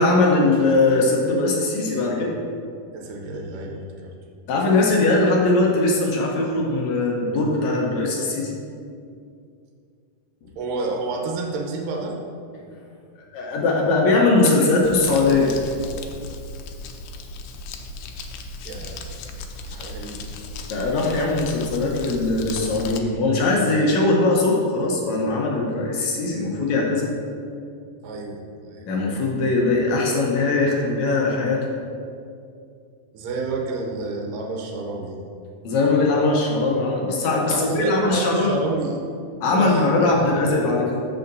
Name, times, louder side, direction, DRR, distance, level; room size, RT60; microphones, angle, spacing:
voice 1, 0.0-2.4 4.5-8.5 13.3-15.5 20.7-27.1 28.8-31.7 35.6-38.5 39.4-41.0, left 2 dB, 70° left, -2 dB, 2.0 m, -20 dB
voice 2, 2.9-4.1 10.6-12.2 18.6-19.0 19.7-20.2 28.0-28.4 28.7-28.8 33.1-35.2 37.5-39.0 39.5-40.5, right 3 dB, 80° right, 0 dB, 2.5 m, -29 dB
Crumpling crinkling, 14.8-23.0, left 3 dB, 85° left, 2.3 m, -36 dB
13.5 x 5.7 x 2.7 m, 2.4 s
omnidirectional pair, 3.8 m